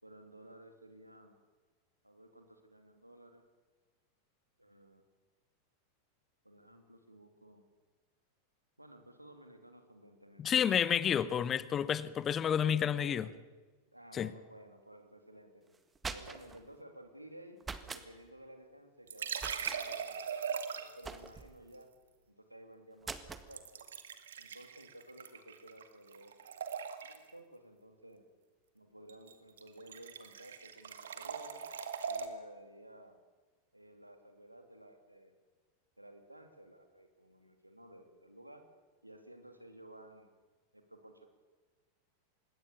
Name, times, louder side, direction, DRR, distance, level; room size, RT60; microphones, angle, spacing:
voice 1, 0.0-1.3 2.0-3.4 4.6-5.0 6.4-7.6 8.8-10.6 11.0-11.4 12.5-13.3 13.9-15.8 16.1-17.6 17.9-20.2 20.7-21.9 22.3-23.9 24.4-26.4 27.0-28.2 28.7-31.6 32.0-33.2 33.7-35.4 36.0-38.6 39.0-40.3 40.7-41.3, right 1 dB, 85° right, 2.9 m, -55 dB
voice 2, 10.4-13.3 14.1-14.3, left 8 dB, 25° left, 0.9 m, -30 dB
sound 1, 15.7-16.6 17.6-18.1 19.4-19.8 21.0-21.6 23.0-23.5, right 4 dB, 15° right, 1.7 m, -43 dB
sound 2, 19.1-21.1 23.5-25.9 26.1-27.3 29.1-29.3 29.6-32.3, right 7 dB, 65° right, 2.0 m, -40 dB
26.0 x 20.5 x 7.0 m
figure-of-eight pair, 90°, 0 cm